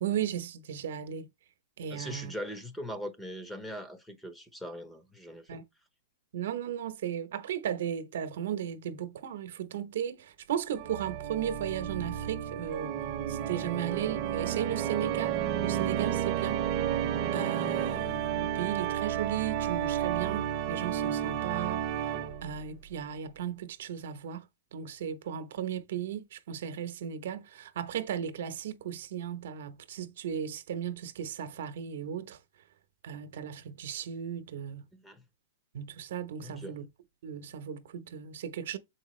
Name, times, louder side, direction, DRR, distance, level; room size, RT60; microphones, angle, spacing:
voice 1, 0.0-1.3 1.8-2.3 5.5-5.6 6.3-13.0 13.3-16.6 17.3-22.1 22.4-32.4 33.0-34.9 35.7-36.9 37.2-38.8, right 9 dB, 70° right, 1.0 m, -36 dB
voice 2, 1.9-5.6 34.9-35.2 36.4-36.8, equal, 5° left, 0.9 m, -41 dB
Organ, 10.8-22.6, right 10 dB, 35° right, 0.9 m, -31 dB
7.2 x 4.5 x 3.2 m
hypercardioid pair, 150°, 0 cm